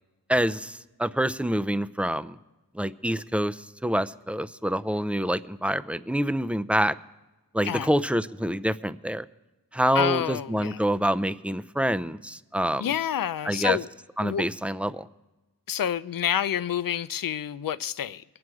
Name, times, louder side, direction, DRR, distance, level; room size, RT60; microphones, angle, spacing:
voice 1, 0.3-2.4 2.7-6.9 7.5-9.3 9.7-12.9 13.4-13.8 14.2-15.1, equal, 5° right, 0.5 m, -26 dB
voice 2, 9.9-10.8 12.8-13.9 14.2-14.5 15.7-18.2, left 9 dB, 75° left, 0.5 m, -28 dB
22.0 x 7.7 x 4.8 m
cardioid pair, 55°, 34 cm